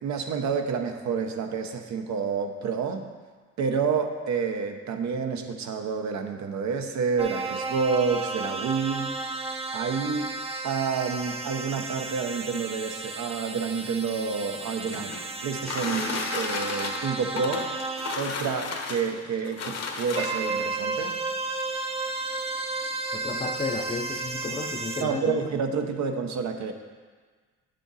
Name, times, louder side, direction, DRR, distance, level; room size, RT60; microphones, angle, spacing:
voice 1, 0.0-3.1 3.6-9.4 9.7-10.3 10.6-15.2 15.4-17.7 18.2-21.2 25.0-26.7, right 5 dB, 65° right, 5 dB, 0.9 m, -29 dB
sound 1, 7.2-18.2 20.1-25.0, right 3 dB, 20° right, 0.6 m, -33 dB
sound 2, 14.4-20.6 21.5-21.6 22.0-22.1 22.4-22.8, left 4 dB, 55° left, 1.2 m, -34 dB
voice 2, 23.1-25.4, left 4 dB, 20° left, 5 dB, 0.6 m, -32 dB
8.5 x 6.7 x 4.0 m, 1.5 s
cardioid pair, 90°, 30 cm